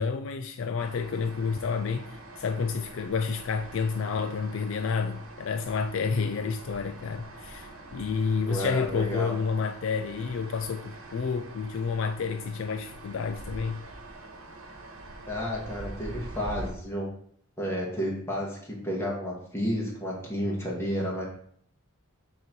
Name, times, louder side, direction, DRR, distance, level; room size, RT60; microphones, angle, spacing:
voice 1, 0.0-13.8, left 5 dB, 60° left, 0.4 m, -30 dB
sound 1, 0.8-16.7, right 2 dB, 75° right, 1.2 m, -44 dB
voice 2, 8.4-9.3 15.3-17.1 17.6-21.2, equal, 10° left, 1.5 m, -31 dB
6.6 x 3.0 x 5.2 m
head